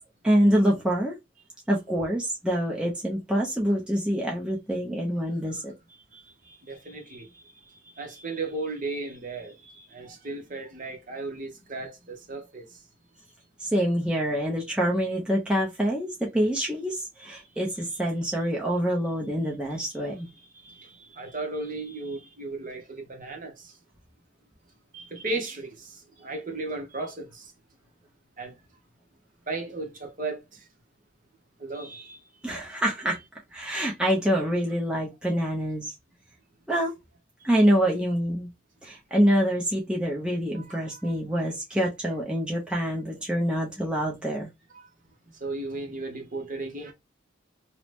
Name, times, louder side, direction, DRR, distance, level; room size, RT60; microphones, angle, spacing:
voice 1, 0.2-1.1 1.7-5.7 13.6-20.3 32.4-33.2 33.5-35.9 36.7-36.9 37.4-38.5 38.8-44.5, equal, 5° right, 0.5 m, -26 dB
voice 2, 6.7-7.4 8.0-12.7 20.4-20.9 21.1-23.7 24.9-27.4 28.4-28.5 29.5-30.4 31.6-32.2 40.6-41.1 44.7-44.9 45.4-46.9, right 3 dB, 40° right, 0.8 m, -35 dB
2.8 x 2.0 x 3.2 m
head